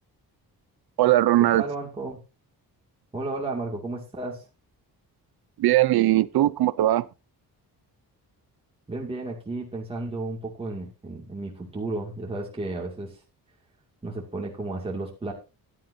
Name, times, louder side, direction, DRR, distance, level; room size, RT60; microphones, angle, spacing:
voice 1, 1.0-1.6 5.6-7.1, right 15 dB, 85° right, 0.8 m, -20 dB
voice 2, 1.6-2.2 3.1-4.4 8.9-13.2 14.0-15.3, right 2 dB, 15° right, 2.5 m, -33 dB
15.0 x 11.0 x 2.8 m
wide cardioid pair, 180°, 37 cm